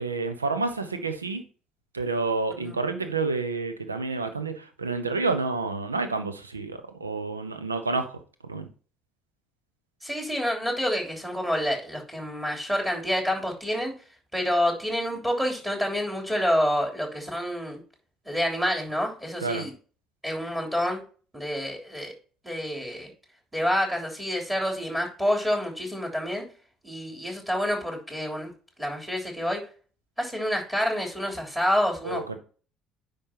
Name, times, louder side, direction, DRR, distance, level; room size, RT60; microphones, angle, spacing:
voice 1, 0.0-1.4 1.9-8.7 19.4-19.7 32.0-32.4, right 3 dB, 85° right, 9 dB, 0.8 m, -29 dB
voice 2, 10.0-13.9 14.3-17.8 18.2-19.7 20.2-21.0 21.3-22.1 22.4-23.1 23.5-26.4 26.8-28.5 28.8-29.6 30.2-32.2, equal, 10° right, 0 dB, 3.4 m, -28 dB
9.9 x 5.3 x 2.9 m, 0.39 s
figure-of-eight pair, 55°, 0 cm